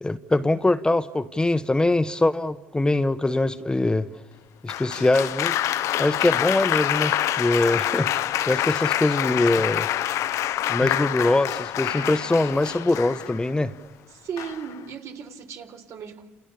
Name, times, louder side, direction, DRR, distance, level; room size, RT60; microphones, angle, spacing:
voice 1, 0.0-4.1 4.6-5.6 6.0-9.9 10.7-13.7, left 2 dB, 15° left, 1.2 m, -23 dB
Applause, 4.7-13.5 14.4-14.8, left 12 dB, 70° left, 1.0 m, -26 dB
voice 2, 14.1-16.2, right 7 dB, 60° right, 4.0 m, -36 dB
29.5 x 29.0 x 7.0 m
supercardioid pair, 65°, 6 cm